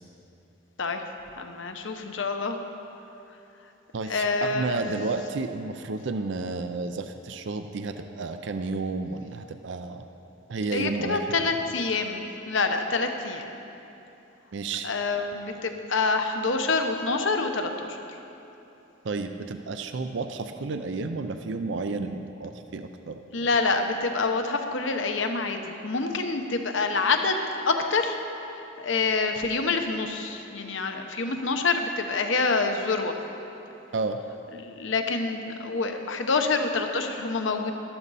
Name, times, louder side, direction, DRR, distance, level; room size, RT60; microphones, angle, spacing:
voice 1, 1.4-2.6 4.1-4.7 10.7-13.5 14.8-18.2 23.3-28.2 28.8-33.1 34.6-37.7, left 4 dB, 65° left, 5 dB, 0.9 m, -27 dB
voice 2, 3.9-10.1 10.5-11.2 14.5-14.9 19.0-23.2 33.9-34.2, right 3 dB, 60° right, 8 dB, 0.5 m, -31 dB
12.5 x 12.5 x 4.1 m, 2.9 s
head